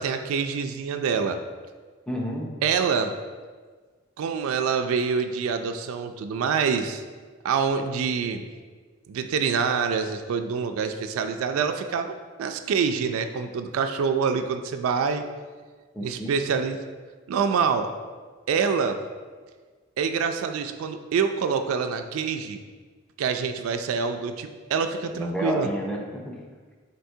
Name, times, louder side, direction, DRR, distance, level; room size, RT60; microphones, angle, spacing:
voice 1, 0.0-1.4 2.6-3.1 4.2-7.0 7.4-8.5 9.1-12.1 12.4-15.2 16.0-16.8 17.3-17.9 18.5-19.0 20.0-22.6 23.2-25.7, right 6 dB, 90° right, 7 dB, 0.3 m, -26 dB
voice 2, 2.1-2.5 15.9-16.3 25.1-26.4, equal, 5° left, -1 dB, 0.4 m, -30 dB
4.5 x 4.1 x 2.7 m, 1.5 s
head